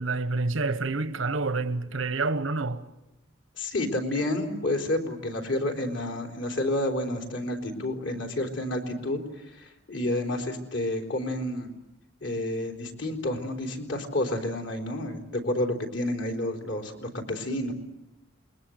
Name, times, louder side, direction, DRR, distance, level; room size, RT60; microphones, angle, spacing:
voice 1, 0.0-2.8, right 3 dB, 85° right, 1.2 m, -28 dB
voice 2, 3.6-11.7 12.2-17.7, left 1 dB, 65° left, 4.0 m, -30 dB
28.5 x 22.5 x 7.9 m
head